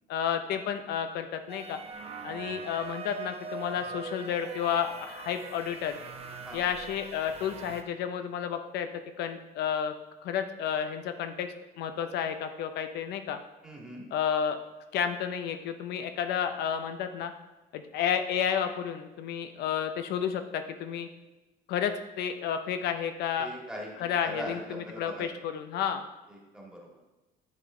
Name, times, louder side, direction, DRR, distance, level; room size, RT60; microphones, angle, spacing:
voice 1, 0.1-1.8 2.2-6.0 6.5-8.9 9.2-9.9 10.2-11.5 11.8-13.4 14.1-14.6 14.9-17.3 17.7-21.1 21.7-23.5 24.0-26.0, left 8 dB, 75° left, 8 dB, 0.6 m, -31 dB
sound 1, 1.5-7.8, right 4 dB, 35° right, 0.7 m, -42 dB
voice 2, 13.6-14.1 23.4-23.9 24.3-25.3 26.3-26.9, equal, 5° right, -3 dB, 1.9 m, -41 dB
9.9 x 3.7 x 3.8 m, 1.1 s
cardioid pair, 110°, 17 cm